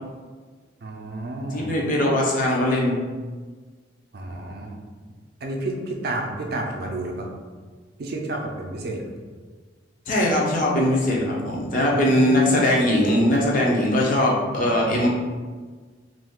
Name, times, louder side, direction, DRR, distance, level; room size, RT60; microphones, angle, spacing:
voice 1, 0.8-1.7 4.1-4.8 5.4-7.3 8.0-9.1 11.9-12.5, right 2 dB, 55° right, 0 dB, 0.4 m, -31 dB
voice 2, 1.5-3.0 10.1-15.1, left 1 dB, 45° left, -3 dB, 0.6 m, -20 dB
2.5 x 2.3 x 3.5 m, 1.4 s
head